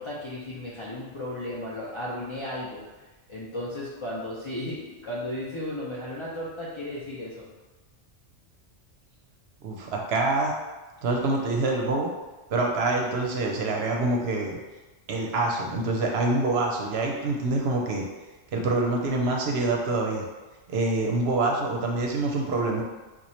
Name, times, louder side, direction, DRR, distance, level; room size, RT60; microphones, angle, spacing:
voice 1, 0.0-2.8 3.3-7.4, left 1 dB, 40° left, -8 dB, 0.4 m, -34 dB
voice 2, 9.6-10.5 11.0-12.1 12.5-14.6 15.1-18.0 18.5-20.2 20.7-22.8, right 2 dB, 70° right, 0 dB, 0.8 m, -26 dB
2.9 x 2.3 x 4.1 m, 1.2 s
omnidirectional pair, 1.2 m